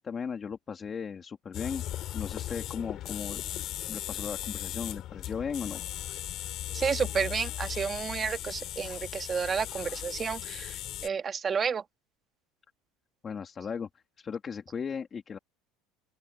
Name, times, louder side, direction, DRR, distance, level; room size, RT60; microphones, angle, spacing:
voice 1, 0.0-1.8 2.1-3.4 3.9-5.8 13.2-13.9 14.2-15.4, left 6 dB, 25° left, 2.7 m, -36 dB
sound 1, 1.5-11.1, left 13 dB, 50° left, 3.3 m, -37 dB
voice 2, 6.7-11.8, right 6 dB, 25° right, 1.7 m, -31 dB
open air
supercardioid pair, 125°, 0 cm